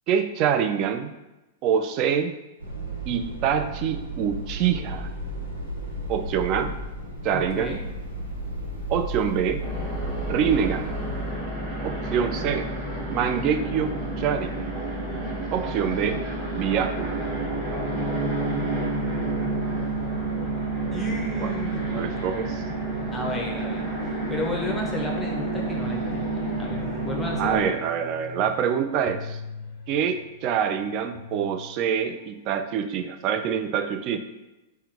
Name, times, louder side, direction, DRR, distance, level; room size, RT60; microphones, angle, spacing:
voice 1, 0.1-1.1 1.6-2.3 3.1-5.1 6.1-6.7 7.2-7.8 8.9-9.6 10.2-10.9 11.8-12.7 13.1-14.7 15.5-16.2 16.5-17.3 21.4-21.5 21.9-22.6 27.4-29.4 29.9-34.2, right 8 dB, 40° right, 8 dB, 0.3 m, -25 dB
sound 1, 2.6-11.3, right 1 dB, 80° right, 1.0 m, -34 dB
voice 2, 7.3-7.8 20.9-22.3 23.1-27.8, left 1 dB, 10° left, -1 dB, 0.8 m, -33 dB
sound 2, 9.6-27.7, right 2 dB, 15° right, 1.3 m, -29 dB
sound 3, 26.3-32.2, left 5 dB, 45° left, 0.5 m, -42 dB
3.6 x 2.2 x 4.2 m, 1.0 s
figure-of-eight pair, 100°, 0 cm